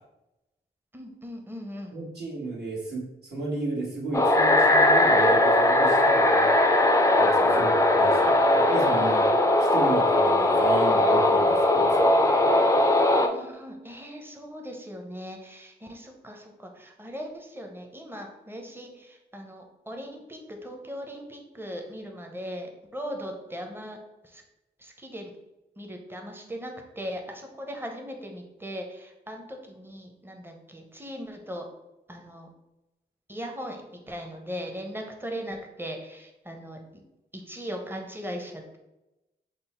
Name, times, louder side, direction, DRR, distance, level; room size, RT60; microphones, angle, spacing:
voice 1, 0.9-2.0 7.4-7.6 13.2-24.0 24.2-24.4 24.8-25.3 25.8-31.7 32.1-32.5 33.3-37.0 37.3-38.8, equal, 10° right, 2 dB, 0.8 m, -39 dB
voice 2, 1.9-6.6 7.2-12.5, right 2 dB, 60° right, -5 dB, 1.4 m, -34 dB
sound 1, 4.1-13.3, left 1 dB, 15° left, 0.5 m, -20 dB
3.7 x 2.0 x 4.3 m, 0.96 s
cardioid pair, 45°, 19 cm